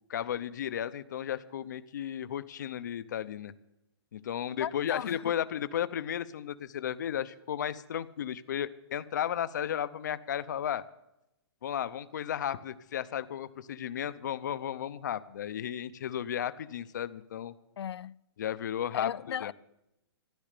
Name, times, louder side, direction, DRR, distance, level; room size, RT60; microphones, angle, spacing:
voice 1, 0.1-3.5 4.1-10.8 11.6-17.5 18.4-19.5, left 10 dB, 45° left, 0.7 m, -34 dB
voice 2, 4.6-5.3 17.8-18.2 18.9-19.5, left 9 dB, 75° left, 0.4 m, -36 dB
14.0 x 12.0 x 6.7 m
hypercardioid pair, 180°, 14 cm